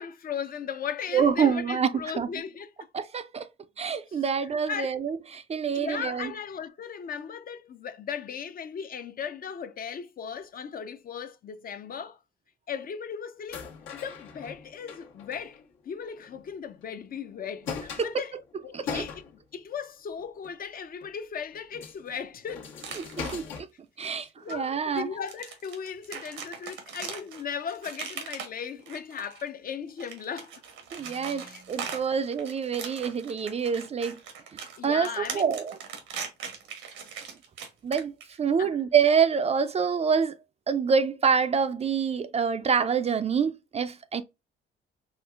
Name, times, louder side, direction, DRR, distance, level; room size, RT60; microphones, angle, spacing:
voice 1, 0.0-2.7 3.8-5.0 5.7-12.2 12.7-15.6 15.9-18.4 18.6-19.2 19.5-22.7 24.1-30.5 31.2-32.2 34.8-35.5 38.6-38.8, left 7 dB, 45° left, 0.5 m, -37 dB
voice 2, 1.1-1.9 2.2-2.3 2.9-3.5 3.8-6.3 18.7-19.0 23.2-23.4 24.0-25.1 30.9-34.2 34.8-35.7 37.8-38.1 38.4-40.4 40.7-44.2, right 6 dB, 30° right, 0.4 m, -26 dB
sound 1, 13.5-16.5 16.8-16.9 17.3-19.6 20.1-20.5 21.0-21.1 21.5-23.6, left 5 dB, 85° left, 1.2 m, -40 dB
sound 2, 22.8-23.6 24.5-24.6 25.0-29.5 29.9-38.4, right 6 dB, 90° right, 1.1 m, -40 dB
4.3 x 2.4 x 2.4 m
cardioid pair, 90°, 20 cm